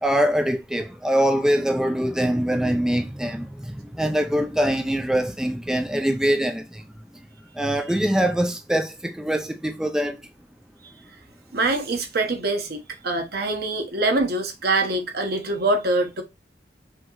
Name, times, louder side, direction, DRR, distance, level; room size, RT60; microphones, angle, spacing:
voice 1, 0.0-6.8 7.5-10.2, equal, 5° right, 0.3 m, -23 dB
voice 2, 11.5-16.2, right 2 dB, 60° right, 1.1 m, -24 dB
5.6 x 2.9 x 2.5 m
head